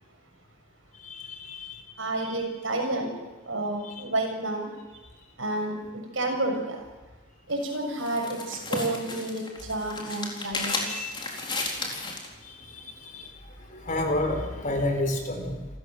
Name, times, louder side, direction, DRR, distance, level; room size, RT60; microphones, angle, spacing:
voice 1, 1.0-1.8 3.8-4.0 10.7-11.2 12.4-13.4 13.7-15.7, left 1 dB, 40° left, 4 dB, 4.8 m, -31 dB
voice 2, 2.0-3.1 3.5-4.7 5.4-6.8 7.5-11.0, right 2 dB, 75° right, 2 dB, 6.7 m, -30 dB
sound 1, 7.5-12.3, left 3 dB, 25° left, 4.0 m, -34 dB
28.5 x 14.5 x 7.6 m, 1.2 s
head